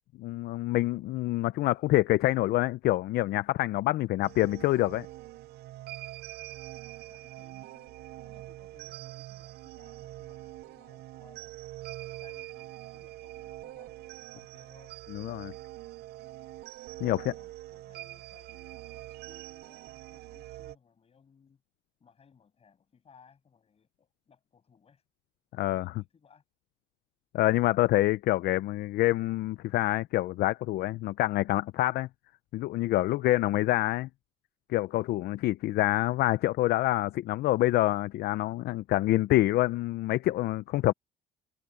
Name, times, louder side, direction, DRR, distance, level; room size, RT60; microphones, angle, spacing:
voice 1, 0.2-5.1 15.1-15.5 17.0-17.3 25.5-26.0 27.3-32.1 32.5-34.1 34.7-40.9, left 16 dB, 70° left, 0.5 m, -26 dB
sound 1, 4.2-20.8, right 16 dB, 75° right, 0.5 m, -44 dB
voice 2, 7.0-11.6 12.0-15.0 17.0-21.6 22.0-25.0 25.7-26.4, left 6 dB, 35° left, 6.4 m, -62 dB
cardioid pair, 110°, 17 cm